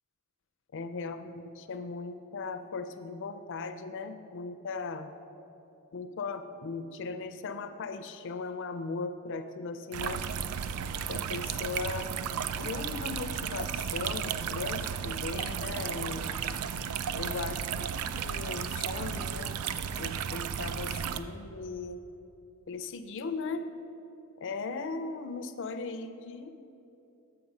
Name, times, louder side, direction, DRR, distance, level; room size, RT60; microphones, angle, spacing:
voice 1, 0.7-5.1 5.9-10.3 11.1-12.1 12.6-16.4 17.1-19.6 20.0-22.0 22.7-23.7 24.4-26.5, left 4 dB, 55° left, 9 dB, 0.4 m, -38 dB
sound 1, 9.9-21.2, right 7 dB, 75° right, 0.3 m, -34 dB
6.7 x 5.9 x 5.4 m, 2.9 s
head